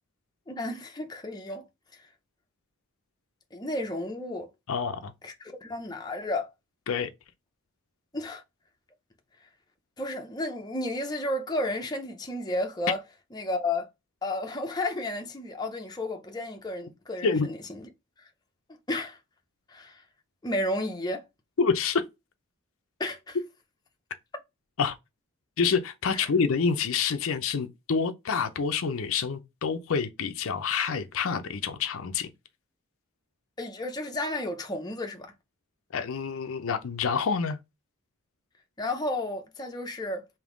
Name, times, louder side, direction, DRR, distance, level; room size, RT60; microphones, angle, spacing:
voice 1, 0.5-1.6 3.5-4.5 5.2-6.5 8.1-8.4 10.0-13.0 13.3-13.9 14.2-17.9 18.9-19.2 19.7-20.0 20.4-21.3 23.0-23.4 26.1-26.3 33.6-35.3 38.8-40.3, left 1 dB, 20° left, 0.6 m, -32 dB
voice 2, 4.7-5.1 6.9-7.1 17.2-17.5 21.6-22.0 24.8-25.0 25.6-32.3 35.9-37.6, left 5 dB, 65° left, 0.5 m, -27 dB
3.5 x 2.7 x 3.7 m
head